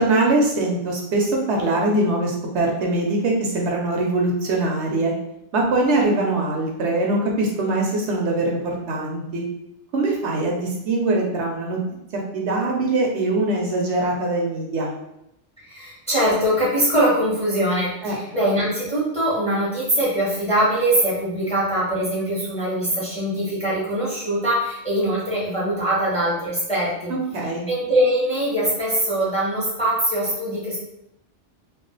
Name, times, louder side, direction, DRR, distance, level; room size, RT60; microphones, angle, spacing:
voice 1, 0.0-5.1 5.5-9.4 9.9-11.8 12.3-14.9 18.0-18.2 27.1-27.6, right 2 dB, 70° right, -1 dB, 0.9 m, -22 dB
voice 2, 15.6-27.1 27.7-30.8, right 1 dB, 5° left, -6 dB, 0.8 m, -22 dB
2.4 x 2.4 x 3.8 m, 0.82 s
omnidirectional pair, 1.2 m